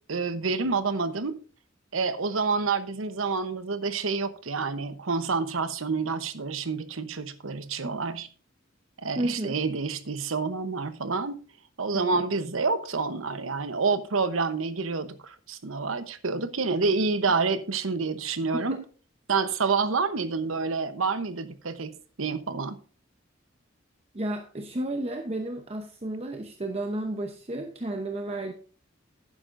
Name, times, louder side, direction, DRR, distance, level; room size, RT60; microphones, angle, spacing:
voice 1, 0.1-1.4 1.9-8.3 9.0-11.4 11.8-18.8 19.3-21.9 22.2-22.8, right 4 dB, 85° right, 0.9 m, -28 dB
voice 2, 9.2-9.6 11.9-12.2 18.5-18.8 24.1-28.5, right 1 dB, 30° right, 0.8 m, -32 dB
11.5 x 9.8 x 2.6 m
head